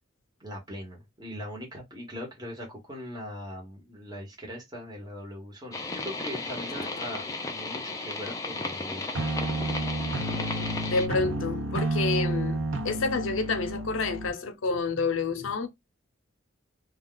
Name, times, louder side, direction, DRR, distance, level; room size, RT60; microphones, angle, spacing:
voice 1, 0.4-9.2, equal, 20° right, 1.1 m, -40 dB
sound 1, 5.7-11.1, left 3 dB, 15° left, 0.4 m, -34 dB
sound 2, 9.1-14.3, right 2 dB, 70° right, 0.7 m, -30 dB
voice 2, 10.9-12.6 12.8-15.7, left 4 dB, 85° left, 0.6 m, -28 dB
2.3 x 2.3 x 3.7 m
head